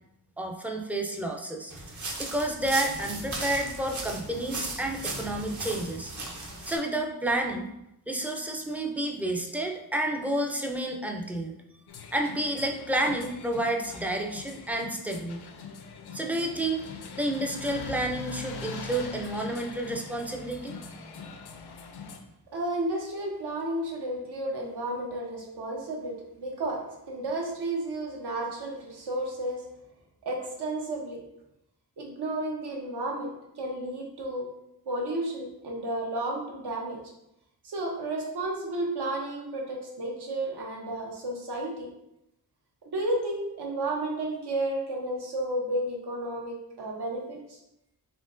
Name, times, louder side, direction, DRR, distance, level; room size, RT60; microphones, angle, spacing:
voice 1, 0.4-1.7 2.2-6.1 6.7-7.7 8.1-11.6 12.1-15.5 16.1-16.9 17.2-20.8, right 1 dB, 5° right, 2 dB, 0.3 m, -30 dB
sound 1, 1.7-6.8, right 2 dB, 50° right, 0.7 m, -36 dB
sound 2, 11.9-22.2, left 4 dB, 80° left, 0.5 m, -42 dB
voice 2, 22.5-29.6 30.2-31.2 32.0-33.3 33.6-34.5 34.9-37.0 37.6-41.9 42.8-47.6, right 1 dB, 85° right, -1 dB, 1.0 m, -32 dB
4.4 x 3.5 x 2.4 m, 0.84 s
wide cardioid pair, 170°, 39 cm